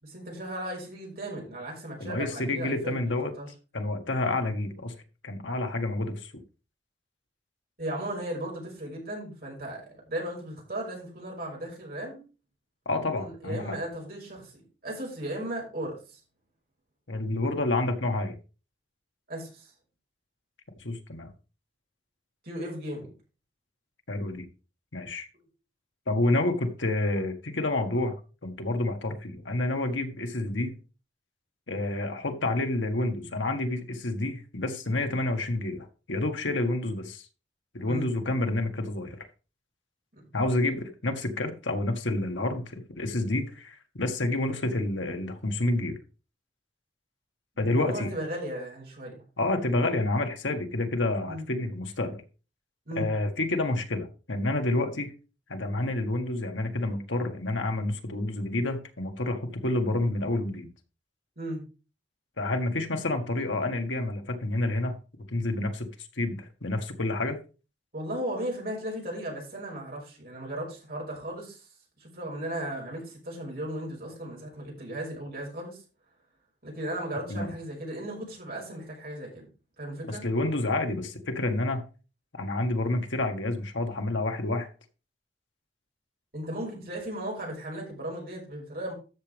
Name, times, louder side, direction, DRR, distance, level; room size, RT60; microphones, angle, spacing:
voice 1, 0.0-3.5 7.8-12.2 13.1-16.2 19.3-19.7 22.4-23.1 25.3-25.4 37.9-38.1 47.7-49.2 51.3-51.5 52.9-53.1 61.4-61.6 67.9-71.7 72.0-75.8 76.6-79.5 79.8-80.2 86.3-88.9, right 1 dB, 50° right, -2 dB, 5.8 m, -36 dB
voice 2, 2.0-3.3 3.7-4.9 5.2-6.4 12.8-13.8 17.1-18.3 20.8-21.3 24.1-24.5 24.9-25.3 26.1-28.1 28.4-30.8 31.7-37.2 37.7-39.2 40.3-46.0 47.6-48.1 49.4-52.2 52.9-55.1 55.5-60.7 62.4-65.0 65.3-67.4 77.3-77.5 80.1-81.8 82.3-84.7, left 2 dB, 90° left, 5 dB, 1.7 m, -29 dB
13.0 x 7.3 x 3.5 m, 0.33 s
head